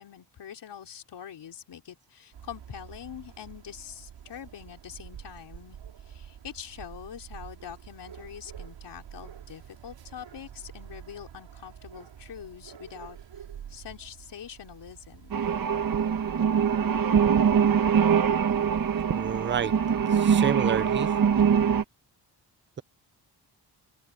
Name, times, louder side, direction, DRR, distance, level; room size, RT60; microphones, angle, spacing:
voice 1, 0.0-13.2 13.7-15.4, left 9 dB, 70° left, 3.8 m, -44 dB
sound 1, 2.3-15.6, right 9 dB, 85° right, 5.9 m, -47 dB
sound 2, 15.3-21.8, right 7 dB, 50° right, 1.4 m, -23 dB
voice 2, 19.1-19.7 20.1-21.2, right 8 dB, 25° right, 0.6 m, -29 dB
wide cardioid pair, 150°, 43 cm